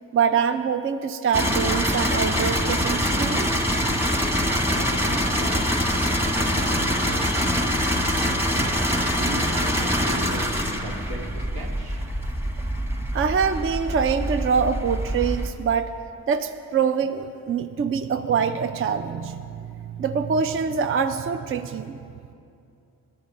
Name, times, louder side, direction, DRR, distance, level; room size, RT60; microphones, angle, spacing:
voice 1, 0.1-3.5 13.1-15.9 16.3-22.0, right 6 dB, 35° right, 8 dB, 0.4 m, -24 dB
sound 1, 1.3-15.5, equal, 5° right, 1.1 m, -24 dB
voice 2, 4.6-5.6 6.4-8.4 9.1-10.5 10.8-12.0, equal, 80° right, -1 dB, 1.5 m, -37 dB
11.5 x 8.6 x 5.3 m, 2.5 s
cardioid pair, 70°, 37 cm